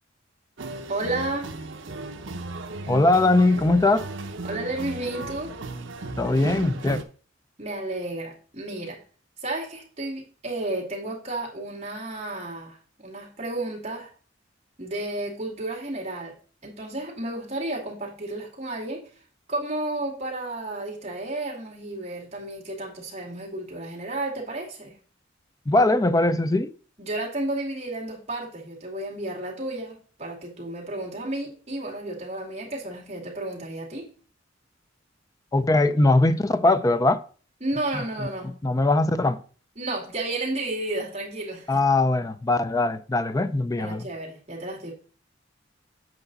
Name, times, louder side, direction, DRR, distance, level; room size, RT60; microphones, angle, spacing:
sound 1, 0.6-7.0, right 2 dB, 70° right, 0.8 m, -36 dB
voice 1, 0.9-1.5 4.4-5.5 7.6-9.0 9.4-14.1 14.8-16.3 16.6-19.0 19.5-24.9 27.0-34.1 37.6-38.5 39.8-41.8 43.8-44.9, right 2 dB, 35° right, 2.5 m, -32 dB
voice 2, 2.9-4.0 6.2-7.0 25.7-26.7 35.5-37.2 38.4-39.4 41.7-44.1, left 2 dB, 20° left, 0.5 m, -21 dB
8.0 x 5.4 x 4.1 m
head